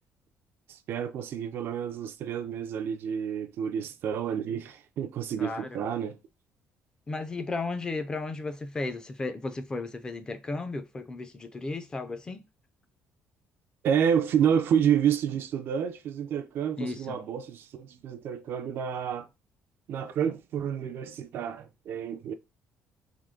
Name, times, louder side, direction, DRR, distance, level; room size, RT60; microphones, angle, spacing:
voice 1, 0.7-6.2 13.8-19.3 19.9-22.3, right 8 dB, 50° right, 0.4 m, -29 dB
voice 2, 5.4-5.8 7.1-12.4 16.8-17.2, left 3 dB, 15° left, 0.4 m, -34 dB
3.5 x 3.0 x 3.6 m
cardioid pair, 175°, 5 cm